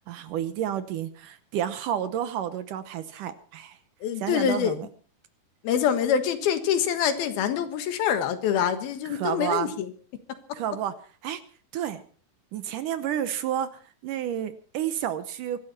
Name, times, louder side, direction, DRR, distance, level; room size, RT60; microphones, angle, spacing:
voice 1, 0.1-3.8 4.2-4.9 9.1-9.7 10.5-10.9 11.2-11.4 11.7-12.0 12.5-13.7 14.0-15.6, right 10 dB, 70° right, 12 dB, 2.3 m, -30 dB
voice 2, 4.0-4.8 5.6-9.9, left 8 dB, 80° left, 9 dB, 3.4 m, -25 dB
24.0 x 12.0 x 4.3 m, 0.40 s
omnidirectional pair, 4.3 m